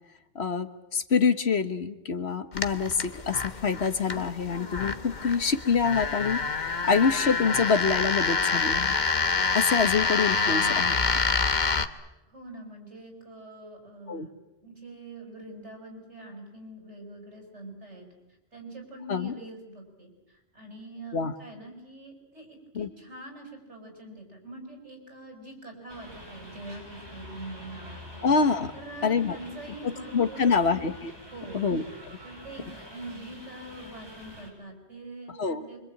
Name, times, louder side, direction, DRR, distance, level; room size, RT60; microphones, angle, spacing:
voice 1, 0.3-9.0 9.5-10.9 14.1-14.3 19.1-19.3 21.1-21.3 22.7-22.9 28.2-28.7 29.0-29.4 30.1-31.1 31.5-31.8 35.4-35.6, left 5 dB, 65° left, 10 dB, 1.6 m, -26 dB
sound 1, 2.5-11.9, left 4 dB, 40° left, 1.2 m, -27 dB
voice 2, 12.3-14.3 14.6-18.1 18.5-28.3 28.7-30.8 31.3-31.6 32.2-35.8, right 1 dB, 75° right, 3 dB, 6.6 m, -44 dB
sound 2, 25.9-34.5, equal, 20° right, 6.2 m, -46 dB
25.5 x 24.5 x 8.8 m, 0.94 s
omnidirectional pair, 1.2 m